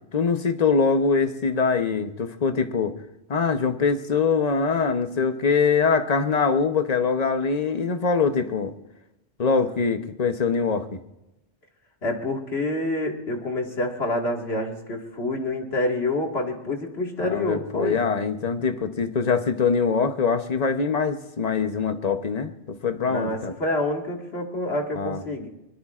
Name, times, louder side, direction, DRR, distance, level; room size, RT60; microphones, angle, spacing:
voice 1, 0.1-3.0 3.3-8.7 9.4-11.0 17.2-23.5 24.9-25.2, left 5 dB, 40° left, 8 dB, 0.9 m, -23 dB
voice 2, 12.0-18.0 23.1-25.5, left 1 dB, 60° left, 1 dB, 2.2 m, -27 dB
24.5 x 21.5 x 2.5 m, 0.93 s
omnidirectional pair, 1.2 m